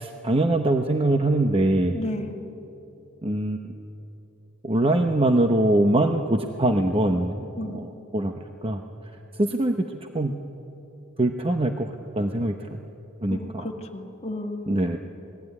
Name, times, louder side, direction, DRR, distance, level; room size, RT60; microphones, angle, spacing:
voice 1, 0.0-2.0 3.2-3.7 4.6-8.3 8.6-8.8 9.4-10.3 11.2-12.8 13.2-13.7 14.7-15.0, right 1 dB, 25° right, 5 dB, 0.9 m, -23 dB
voice 2, 1.9-2.4 7.6-7.8 13.3-14.8, left 1 dB, 30° left, 3 dB, 1.9 m, -33 dB
28.0 x 19.5 x 9.7 m, 2.9 s
head